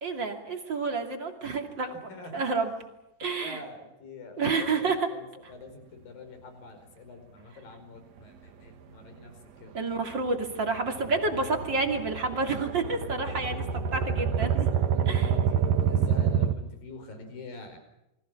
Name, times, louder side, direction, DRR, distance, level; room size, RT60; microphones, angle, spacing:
voice 1, 0.0-2.7 3.2-3.6 4.4-5.1 9.7-14.7 15.1-15.3, right 3 dB, 30° right, 4 dB, 2.8 m, -29 dB
voice 2, 2.1-2.4 3.4-9.3 9.6-9.7 13.9-17.8, left 3 dB, 60° left, 7 dB, 6.6 m, -45 dB
sound 1, 8.2-8.4 8.8-8.9 9.1-9.2 9.6-9.7 9.9-16.5, right 7 dB, 55° right, 2.1 m, -28 dB
29.0 x 24.0 x 6.2 m, 0.89 s
omnidirectional pair, 4.7 m